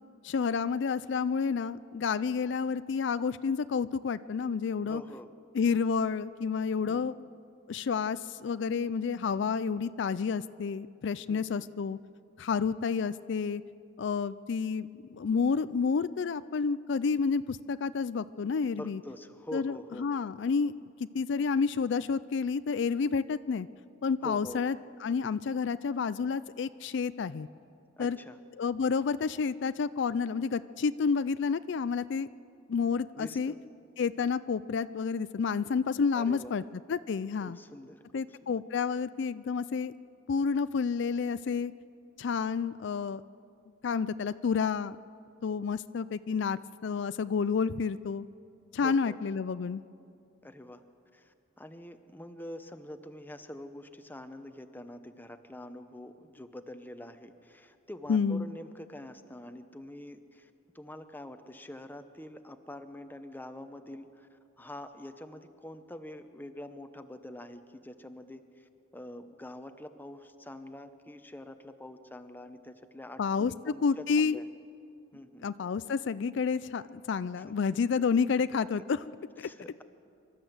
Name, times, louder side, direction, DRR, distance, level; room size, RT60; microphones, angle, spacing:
voice 1, 0.2-5.0 5.5-7.1 7.7-12.0 12.4-13.6 14.0-19.0 19.5-23.7 24.0-24.8 25.0-27.5 28.0-28.2 28.6-32.3 32.7-33.5 34.0-36.6 36.9-37.6 38.1-39.9 40.3-41.7 42.2-43.2 43.8-45.0 45.4-48.2 48.7-49.8 58.1-58.5 73.2-74.4 75.4-79.0, left 5 dB, 70° left, 15 dB, 0.4 m, -30 dB
voice 2, 4.9-5.3 6.8-7.2 11.3-11.6 18.7-20.1 24.2-24.6 28.0-28.4 33.1-33.6 36.1-36.5 37.4-38.6 48.8-49.2 50.4-50.8 51.1-60.5 60.7-74.4 75.1-75.5 77.5-77.6 78.8-78.9 79.4-79.8, left 1 dB, 10° left, 8 dB, 0.9 m, -45 dB
25.5 x 13.0 x 7.9 m, 2.5 s
head